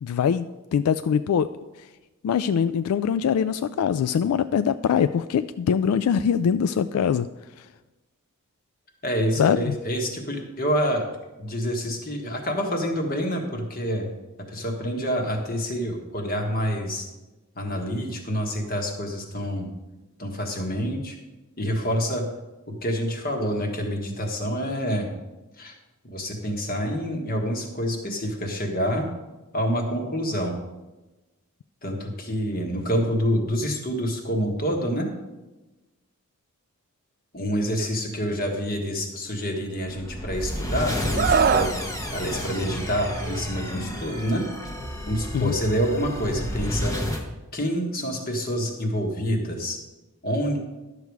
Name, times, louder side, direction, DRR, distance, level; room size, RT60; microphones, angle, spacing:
voice 1, 0.0-1.5 2.2-7.3 9.4-9.8 45.3-45.5, left 7 dB, 85° left, 12 dB, 0.3 m, -23 dB
voice 2, 9.0-11.0 11.4-14.1 14.5-17.1 17.5-19.7 20.2-21.2 21.6-22.3 22.7-25.1 25.6-25.7 26.0-29.1 29.5-30.6 31.8-35.1 37.3-41.8 42.1-44.5 45.1-46.9 47.5-49.8 50.2-50.6, equal, 40° left, 2 dB, 1.5 m, -27 dB
sound 1, 39.8-47.3, equal, 15° left, 1.0 m, -31 dB
Screaming, 41.2-41.7 43.2-43.4, right 6 dB, 40° right, 0.3 m, -21 dB
11.5 x 6.8 x 4.7 m, 1.1 s
head